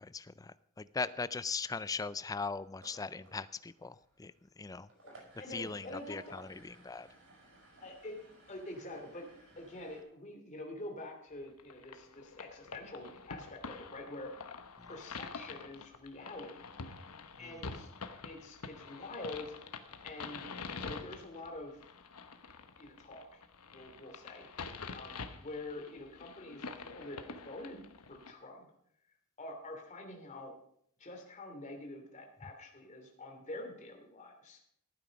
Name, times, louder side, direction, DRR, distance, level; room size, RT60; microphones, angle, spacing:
voice 1, 0.0-4.9 5.5-7.1 14.8-14.9 17.4-17.6, left 4 dB, 15° left, 16 dB, 0.4 m, -40 dB
sound 1, 2.6-10.0, right 2 dB, 60° right, 7.0 m, -61 dB
voice 2, 5.0-6.4 7.8-8.2 8.5-9.3 9.6-14.3 14.9-16.6 17.4-17.9 18.2-19.6 20.0-20.5 20.8-21.8 22.8-23.4 23.7-24.5 24.9-27.8 28.1-28.6 29.4-30.5 31.0-34.6, left 2 dB, 35° left, 2 dB, 2.7 m, -46 dB
sound 2, 11.6-28.3, left 4 dB, 85° left, 1.1 m, -46 dB
15.0 x 9.3 x 5.1 m, 0.69 s
head